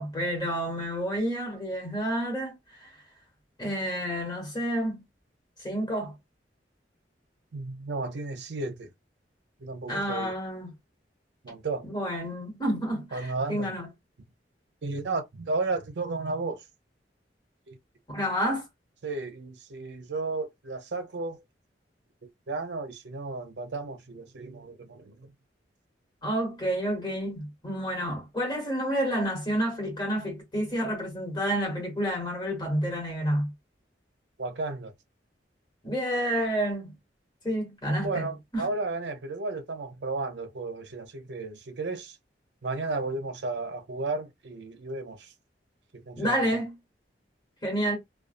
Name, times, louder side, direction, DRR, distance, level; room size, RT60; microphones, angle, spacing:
voice 1, 0.0-2.9 3.6-5.0 5.6-6.1 9.9-10.7 11.8-13.9 18.1-18.7 26.2-33.5 35.8-36.9 37.4-38.7 46.2-46.7 47.6-48.0, equal, 25° left, 1.4 m, -29 dB
voice 2, 7.5-8.9 9.6-10.3 11.4-11.8 13.1-13.7 14.8-16.6 17.7-17.8 19.0-21.4 22.5-25.3 34.4-34.9 38.0-42.2 42.6-45.3 45.9-46.4, right 3 dB, 70° right, 0.6 m, -33 dB
2.5 x 2.3 x 2.5 m
head